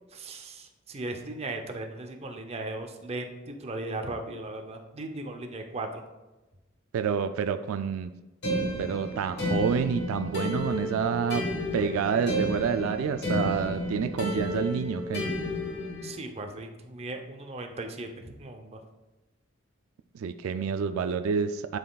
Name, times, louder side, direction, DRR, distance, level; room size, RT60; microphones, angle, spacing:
voice 1, 0.1-6.0 16.0-18.8, right 2 dB, 30° right, 4 dB, 0.6 m, -37 dB
voice 2, 6.9-8.1 8.8-11.4 11.7-15.2 20.1-21.8, right 6 dB, 80° right, 9 dB, 0.3 m, -28 dB
sound 1, 8.4-16.1, left 1 dB, 55° left, 1.3 m, -31 dB
10.5 x 4.0 x 2.3 m, 1.1 s
head